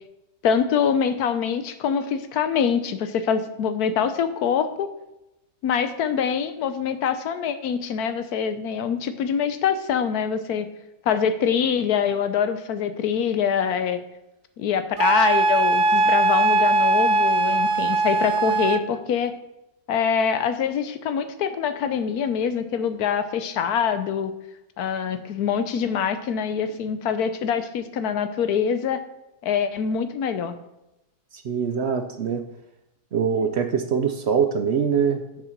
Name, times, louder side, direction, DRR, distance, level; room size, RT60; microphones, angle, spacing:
voice 1, 0.4-4.9 5.6-10.7 11.1-14.0 14.6-19.3 19.9-24.3 24.8-29.0 29.4-30.5, left 7 dB, 75° left, 10 dB, 1.3 m, -24 dB
Wind instrument woodwind instrument, 15.0-18.9, right 3 dB, 85° right, 0.5 m, -20 dB
voice 2, 31.4-32.4 33.1-35.4, right 6 dB, 55° right, 7 dB, 0.8 m, -23 dB
7.5 x 7.0 x 5.9 m, 0.91 s
omnidirectional pair, 1.6 m